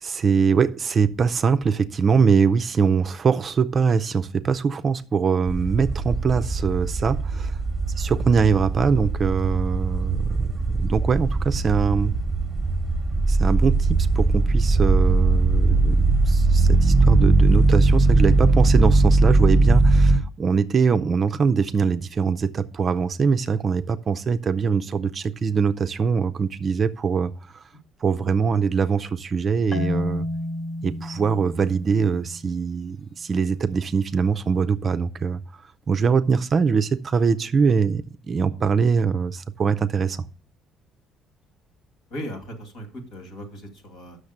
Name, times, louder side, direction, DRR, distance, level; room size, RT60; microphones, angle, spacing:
voice 1, 0.0-7.6 8.0-12.1 13.3-27.7 28.0-30.3 30.8-35.6 35.9-40.2, right 5 dB, 35° right, 0.4 m, -23 dB
sound 1, 5.5-20.2, right 3 dB, 10° right, 1.0 m, -20 dB
Marimba xylophone, 29.7-32.7, left 2 dB, 50° left, 1.2 m, -31 dB
voice 2, 42.1-44.2, equal, 75° left, 2.4 m, -37 dB
7.3 x 6.4 x 6.6 m
cardioid pair, 130°, 0 cm